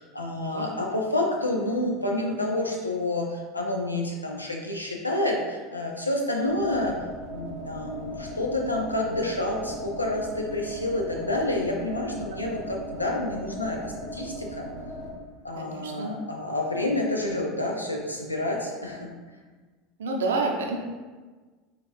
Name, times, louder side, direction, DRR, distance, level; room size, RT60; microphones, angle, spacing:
voice 1, 0.0-7.0 7.3-14.7 15.4-19.1, left 1 dB, 85° left, 0 dB, 0.6 m, -29 dB
sound 1, 6.5-15.1, equal, 70° left, 1.1 m, -38 dB
voice 2, 15.5-16.1 20.0-20.8, right 3 dB, 70° right, 2 dB, 0.6 m, -28 dB
5.0 x 2.5 x 3.1 m, 1.3 s
figure-of-eight pair, 75°, 0 cm